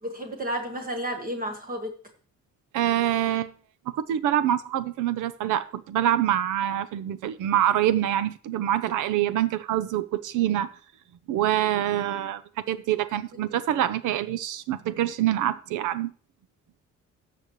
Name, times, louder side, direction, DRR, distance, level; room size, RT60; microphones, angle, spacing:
voice 1, 0.0-1.9 13.5-13.6, equal, 30° right, 1.3 m, -32 dB
voice 2, 2.7-3.5 3.9-10.7 11.3-12.4 12.7-16.1, right 11 dB, 90° right, 0.7 m, -25 dB
13.0 x 7.0 x 3.1 m
cardioid pair, 90°, 30 cm